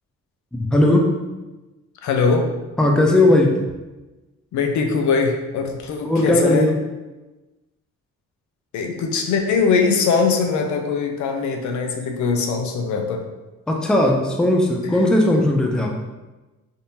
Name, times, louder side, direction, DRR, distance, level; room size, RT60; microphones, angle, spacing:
voice 1, 0.5-1.1 2.8-3.6 6.0-6.7 13.7-15.9, left 1 dB, 5° left, 1 dB, 0.4 m, -17 dB
voice 2, 2.0-2.5 4.5-6.7 8.7-13.2, left 5 dB, 70° left, 3 dB, 0.6 m, -21 dB
3.6 x 2.7 x 2.7 m, 1.1 s
cardioid pair, 90°, 30 cm